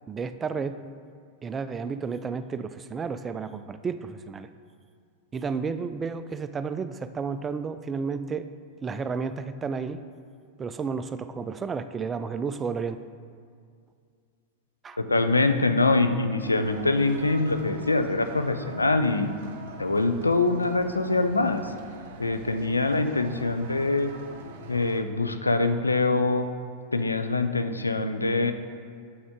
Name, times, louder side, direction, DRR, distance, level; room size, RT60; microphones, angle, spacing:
voice 1, 0.1-0.8 1.4-4.5 5.3-8.4 8.8-10.0 10.6-13.0 14.8-15.0, right 5 dB, 20° right, 11 dB, 0.3 m, -32 dB
voice 2, 15.0-19.3 19.8-21.7 22.2-24.1 24.7-26.5 26.9-28.5, left 3 dB, 80° left, 8 dB, 0.4 m, -24 dB
sound 1, 16.4-25.0, right 3 dB, 55° right, 0.7 m, -44 dB
7.9 x 5.9 x 3.7 m, 2.2 s
figure-of-eight pair, 90°, 0 cm